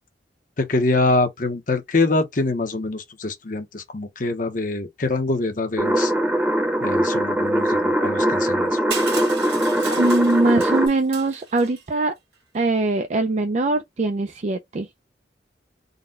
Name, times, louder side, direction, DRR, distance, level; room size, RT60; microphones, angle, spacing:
voice 1, 0.6-6.1 6.8-8.8, left 2 dB, 50° left, 0.9 m, -24 dB
sound 1, 5.8-10.9, right 1 dB, 10° right, 0.8 m, -21 dB
Crushing, 8.9-11.8, right 5 dB, 70° right, 1.7 m, -34 dB
voice 2, 10.0-12.1 12.5-14.9, right 2 dB, 40° right, 0.4 m, -22 dB
4.0 x 2.2 x 3.8 m
head